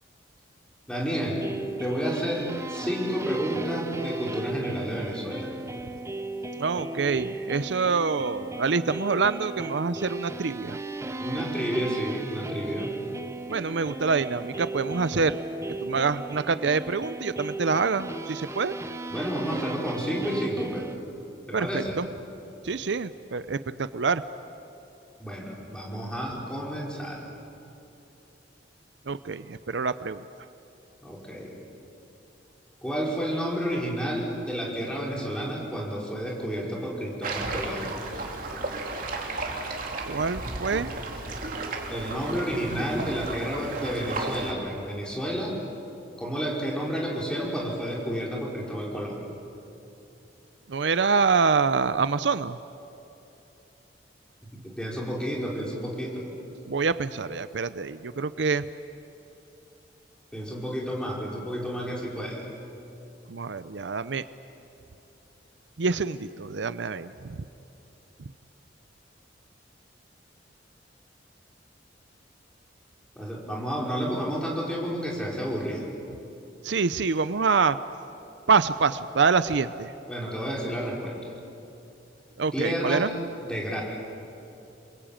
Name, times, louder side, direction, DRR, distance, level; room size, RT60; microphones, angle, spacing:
voice 1, 0.9-1.4 1.8-5.5 11.2-13.0 19.1-20.9 21.5-22.0 25.2-27.2 31.0-31.5 32.8-37.9 41.9-45.5 46.2-49.2 54.5-56.3 60.3-62.4 73.2-75.9 80.1-81.3 82.5-83.1 83.4-83.8, equal, 5° left, -3 dB, 5.2 m, -31 dB
sound 1, 1.3-21.0, right 2 dB, 15° right, 0.8 m, -35 dB
voice 2, 6.6-10.8 13.5-15.4 15.8-18.7 21.5-22.1 22.6-24.2 29.1-30.2 40.1-40.9 50.7-52.6 56.7-58.6 63.3-64.2 65.8-67.4 76.6-77.8 78.5-79.9 82.4-83.1, right 5 dB, 70° right, 14 dB, 0.6 m, -26 dB
sound 2, 37.2-44.5, right 2 dB, 50° right, 3.0 m, -34 dB
28.5 x 22.5 x 8.9 m, 2.8 s
head